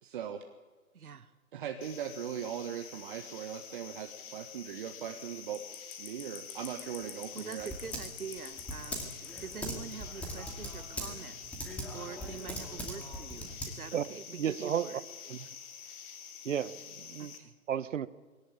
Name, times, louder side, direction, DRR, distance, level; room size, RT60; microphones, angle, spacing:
voice 1, 0.0-0.4 1.5-5.6 6.0-7.7, right 9 dB, 35° right, 5 dB, 1.4 m, -39 dB
voice 2, 0.9-1.3 7.3-15.0 17.2-17.5, right 6 dB, 85° right, 12 dB, 1.8 m, -45 dB
sound 1, 1.8-17.4, left 7 dB, 25° left, 2.5 m, -47 dB
Typing, 6.7-14.1, equal, 5° left, 2.3 m, -42 dB
voice 3, 13.9-14.9 15.3-15.5 16.4-17.3 17.7-18.1, right 9 dB, 60° right, 16 dB, 1.1 m, -33 dB
22.0 x 17.5 x 8.8 m, 1.3 s
hypercardioid pair, 155°, 43 cm